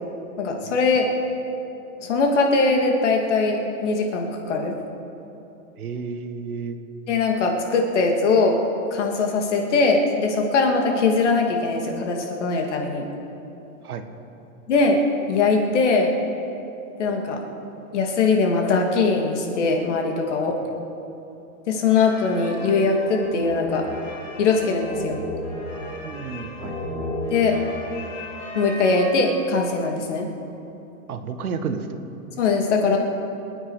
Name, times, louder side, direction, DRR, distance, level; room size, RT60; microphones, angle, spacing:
voice 1, 0.4-1.1 2.0-4.8 7.1-8.6 8.9-13.0 14.7-15.0 15.3-16.1 17.0-17.4 17.9-20.5 21.7-23.8 24.4-25.2 27.3-27.5 28.5-30.3 32.4-33.0, left 4 dB, 55° left, 2 dB, 2.5 m, -21 dB
voice 2, 5.8-6.8 13.8-14.1 26.0-26.8 31.1-32.0, right 5 dB, 80° right, 7 dB, 1.7 m, -31 dB
sound 1, 21.9-29.7, left 1 dB, 20° left, 3.3 m, -34 dB
26.0 x 9.8 x 4.9 m, 2.9 s
hypercardioid pair, 165°, 43 cm